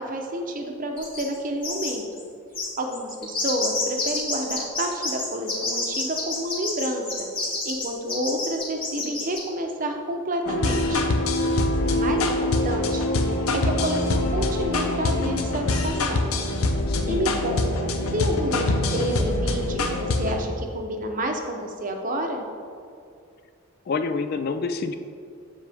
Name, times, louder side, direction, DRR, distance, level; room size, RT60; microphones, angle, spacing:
voice 1, 0.0-2.0 2.8-7.0 7.6-11.0 11.8-16.3 17.1-22.4, right 1 dB, 40° right, 3 dB, 0.7 m, -29 dB
sound 1, 1.0-1.4 1.6-2.2 2.5-9.4, left 3 dB, 25° left, 1.8 m, -28 dB
sound 2, 10.4-20.4, left 2 dB, 85° left, 0.7 m, -24 dB
voice 2, 16.9-17.4 23.9-24.9, left 4 dB, 45° left, 10 dB, 0.3 m, -28 dB
7.5 x 7.0 x 3.5 m, 2.4 s
head